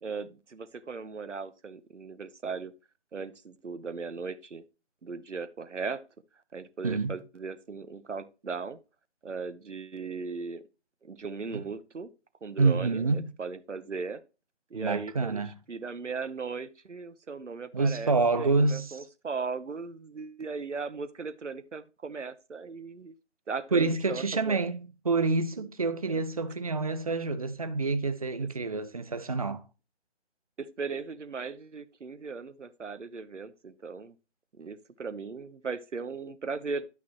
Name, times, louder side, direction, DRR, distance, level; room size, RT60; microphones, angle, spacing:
voice 1, 0.0-2.7 3.1-4.6 5.0-6.0 6.5-8.8 9.2-10.6 11.0-12.1 12.4-14.2 14.7-23.1 23.5-24.6 26.0-26.2 28.4-28.5 30.6-34.1 34.6-36.8, right 4 dB, 80° right, 1.0 m, -38 dB
voice 2, 12.6-13.3 14.7-15.5 17.7-19.0 23.7-29.6, right 3 dB, 30° right, 0.6 m, -27 dB
11.5 x 6.0 x 2.9 m
figure-of-eight pair, 150°, 35 cm